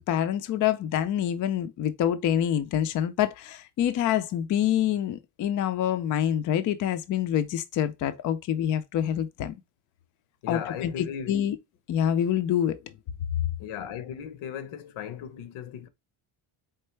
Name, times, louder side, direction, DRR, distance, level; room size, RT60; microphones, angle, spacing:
voice 1, 0.1-9.6 10.5-11.6 11.9-12.8, left 10 dB, 40° left, 0.4 m, -26 dB
voice 2, 10.4-11.4 13.6-15.9, left 8 dB, 80° left, 0.9 m, -37 dB
4.4 x 3.7 x 3.2 m
cardioid pair, 165°, 49 cm